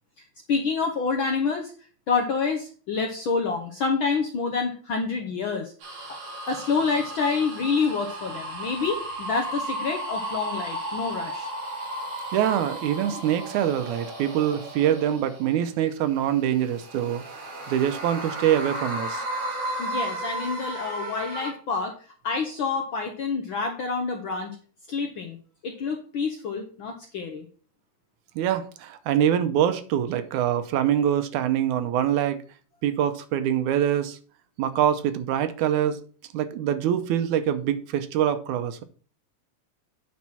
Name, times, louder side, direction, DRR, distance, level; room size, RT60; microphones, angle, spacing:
voice 1, 0.2-1.7 2.1-5.7 6.5-11.5 19.8-21.9 22.2-24.6 24.9-25.4 25.6-27.5, left 5 dB, 70° left, 1.2 m, -27 dB
sound 1, 5.8-15.7 16.3-21.5, right 1 dB, 70° right, 3.8 m, -34 dB
voice 2, 12.3-19.2 28.4-32.4 32.8-34.2 34.6-36.0 36.3-38.8, right 10 dB, 90° right, 2.1 m, -24 dB
9.1 x 4.2 x 5.6 m
omnidirectional pair, 3.4 m